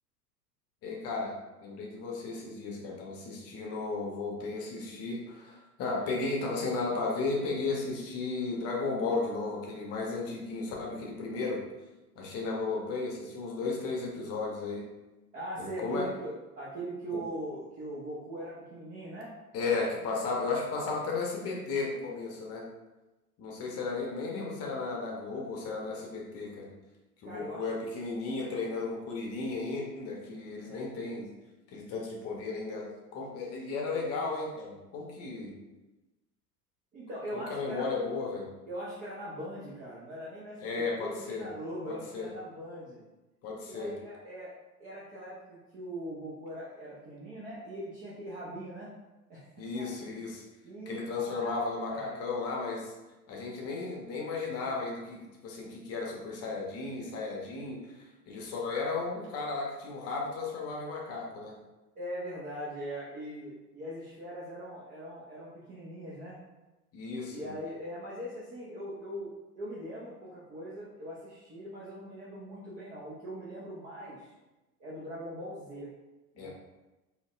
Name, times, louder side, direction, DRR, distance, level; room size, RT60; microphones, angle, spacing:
voice 1, 0.8-1.4 1.6-11.6 12.2-14.9 15.6-16.1 17.1-17.2 19.5-22.7 23.4-26.7 27.2-31.3 31.7-35.6 37.3-38.5 40.6-41.5 41.9-42.3 43.4-43.9 49.6-50.4 50.9-52.9 53.3-61.5 66.9-67.5 76.4-76.5, left 3 dB, 30° left, -1 dB, 0.7 m, -34 dB
voice 2, 15.3-19.3 19.7-19.9 27.2-27.7 30.6-30.9 36.9-37.9 38.7-43.0 43.6-44.5 44.8-48.9 49.3-49.9 50.6-51.6 51.9-52.3 62.0-66.4 67.3-74.3 74.8-75.9 76.3-76.5, right 1 dB, 20° right, -7 dB, 0.3 m, -41 dB
3.8 x 2.1 x 2.4 m, 1.1 s
figure-of-eight pair, 85°, 47 cm